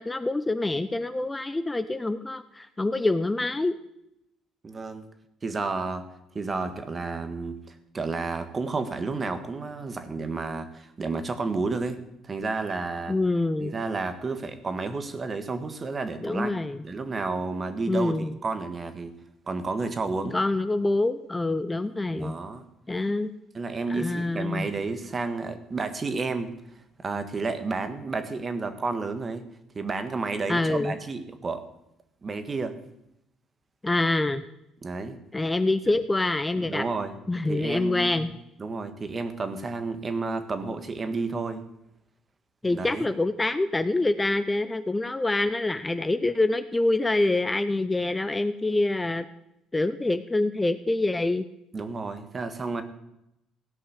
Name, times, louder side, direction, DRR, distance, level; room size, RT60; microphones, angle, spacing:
voice 1, 0.0-3.7 13.1-13.7 16.2-16.8 17.9-18.4 20.3-22.3 22.9-23.3 23.9-24.7 30.5-30.9 33.8-34.4 35.3-36.8 37.3-38.3 42.6-49.3 49.7-51.4, left 2 dB, 15° left, 11 dB, 0.7 m, -26 dB
voice 2, 4.6-5.0 5.4-6.0 6.3-13.2 13.6-16.5 16.8-18.1 18.4-19.1 19.5-20.4 22.1-22.7 23.5-26.5 27.0-29.4 29.7-31.6 32.2-32.8 34.8-35.2 36.6-37.1 37.5-38.2 38.6-41.6 42.6-43.1 51.7-52.8, right 3 dB, 35° right, 9 dB, 1.6 m, -31 dB
16.0 x 5.5 x 8.3 m, 0.83 s
supercardioid pair, 80°, 0 cm